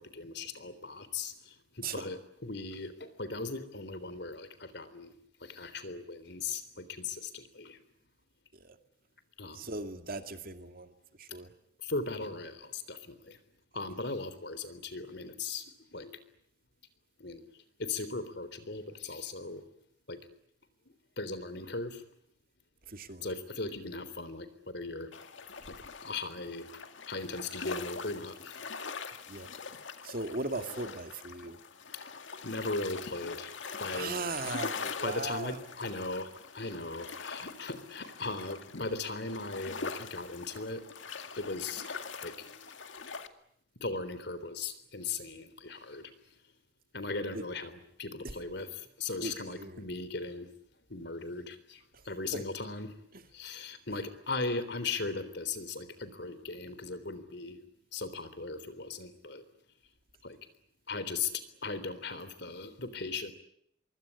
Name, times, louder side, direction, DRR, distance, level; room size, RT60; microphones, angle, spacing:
voice 1, 0.0-5.1 5.4-7.8 9.4-9.8 11.8-13.4 13.7-15.7 15.9-16.2 17.2-17.4 17.8-19.6 20.1-20.2 21.2-22.0 23.2-25.1 25.7-25.8 26.0-26.8 27.1-28.6 32.4-33.5 33.8-34.2 35.0-40.8 41.4-41.8 42.1-42.3 43.8-46.1 46.9-50.5 50.9-52.9 53.3-57.6 57.9-59.4 60.2-60.4 60.9-63.3, left 3 dB, 60° left, 14 dB, 3.6 m, -38 dB
voice 2, 9.5-10.9 11.2-11.5 22.9-23.3 29.3-29.5 30.0-31.6 33.9-35.5 47.3-47.4 49.2-49.8 52.3-52.4, right 3 dB, 50° right, 7 dB, 2.3 m, -38 dB
sound 1, 25.1-43.3, left 5 dB, 75° left, 2.1 m, -43 dB
25.0 x 23.5 x 9.9 m, 0.72 s
head